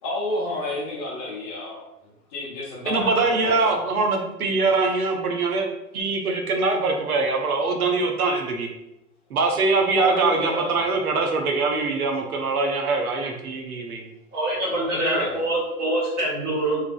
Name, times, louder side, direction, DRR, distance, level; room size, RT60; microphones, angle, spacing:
voice 1, 0.0-1.8 2.3-3.9 10.0-10.8 14.6-15.5, left 2 dB, 20° left, -5 dB, 0.7 m, -30 dB
voice 2, 2.9-5.7 5.9-8.7 9.3-14.0, right 3 dB, 70° right, 2 dB, 0.7 m, -23 dB
voice 3, 14.3-16.8, right 1 dB, 20° right, -5 dB, 1.2 m, -25 dB
3.3 x 3.2 x 2.3 m, 0.89 s
figure-of-eight pair, 120°, 46 cm